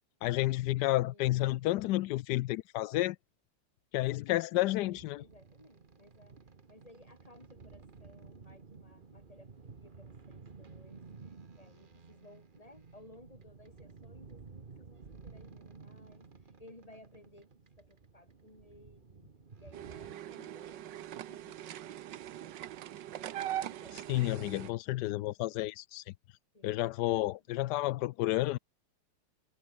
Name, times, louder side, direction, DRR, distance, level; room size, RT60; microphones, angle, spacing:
voice 1, 0.2-3.2 3.9-5.2 24.1-26.1 26.6-28.6, left 16 dB, 85° left, 0.9 m, -31 dB
voice 2, 0.8-2.1 5.2-6.4 6.7-19.3 19.6-21.8 23.1-24.0 26.5-27.0 27.5-27.6, left 1 dB, 15° left, 4.8 m, -59 dB
sound 1, 4.8-20.1, right 4 dB, 30° right, 1.2 m, -53 dB
sound 2, 19.7-24.7, right 12 dB, 65° right, 1.4 m, -41 dB
omnidirectional pair, 2.3 m